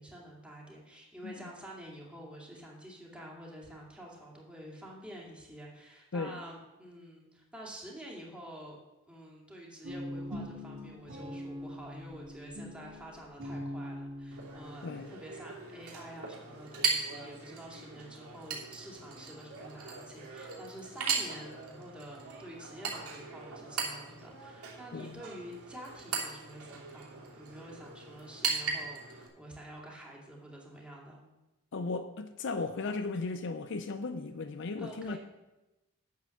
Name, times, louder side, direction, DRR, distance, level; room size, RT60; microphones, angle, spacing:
voice 1, 0.0-8.8 9.1-31.2 34.8-35.2, right 1 dB, 5° right, -3 dB, 2.4 m, -48 dB
Guitar, 9.8-15.0, left 1 dB, 55° right, 2.8 m, -42 dB
Chink clink, 14.3-29.3, right 5 dB, 80° right, 3.1 m, -38 dB
voice 2, 31.7-35.2, left 3 dB, 55° left, 9 dB, 0.5 m, -36 dB
9.3 x 7.5 x 6.6 m, 1.0 s
head